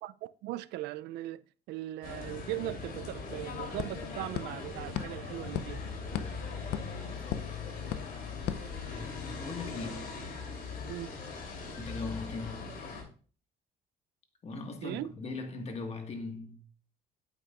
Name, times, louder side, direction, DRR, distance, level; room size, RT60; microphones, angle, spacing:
voice 1, 0.0-5.9 6.8-6.9 10.8-11.2 14.8-15.1, right 16 dB, 80° right, 0.4 m, -39 dB
sound 1, 2.0-13.0, left 4 dB, 60° left, 3.3 m, -40 dB
sound 2, 3.3-9.4, left 10 dB, 80° left, 0.6 m, -40 dB
voice 2, 7.1-7.6 8.9-10.2 11.4-12.8 14.4-16.7, left 3 dB, 40° left, 1.7 m, -40 dB
8.7 x 8.3 x 2.5 m
cardioid pair, 110°, 17 cm